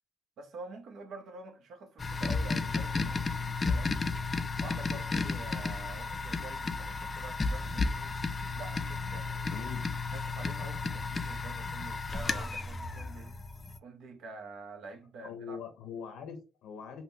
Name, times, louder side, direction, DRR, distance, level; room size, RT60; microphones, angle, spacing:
voice 1, 0.4-3.9 4.6-8.1 8.5-9.5 10.1-13.3 13.8-15.6, right 3 dB, 75° right, 0.7 m, -47 dB
sound 1, 2.0-13.8, left 3 dB, 30° left, 0.4 m, -33 dB
voice 2, 9.5-10.0 15.2-17.0, left 6 dB, 85° left, 0.5 m, -42 dB
3.6 x 2.1 x 2.7 m
cardioid pair, 90°, 0 cm